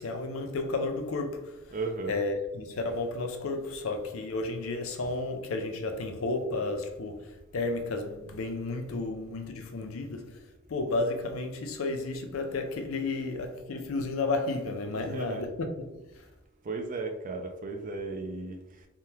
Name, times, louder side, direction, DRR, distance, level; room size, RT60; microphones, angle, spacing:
voice 1, 0.0-1.8 2.1-16.3, left 3 dB, 75° left, 0.5 m, -32 dB
voice 2, 1.7-2.2 14.9-15.5 16.6-18.9, right 3 dB, 40° right, 0.4 m, -35 dB
3.5 x 2.2 x 2.8 m
head